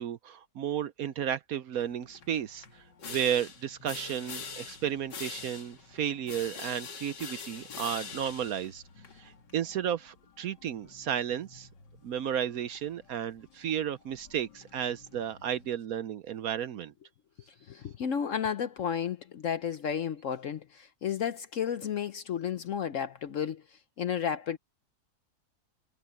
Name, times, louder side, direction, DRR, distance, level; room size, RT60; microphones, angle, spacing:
voice 1, 0.0-8.8 9.2-11.7 12.0-16.9, right 9 dB, 65° right, 1.0 m, -33 dB
sound 1, 1.8-15.7, left 5 dB, 85° left, 2.7 m, -46 dB
voice 2, 17.7-24.6, left 8 dB, 60° left, 0.9 m, -32 dB
omnidirectional pair, 1.8 m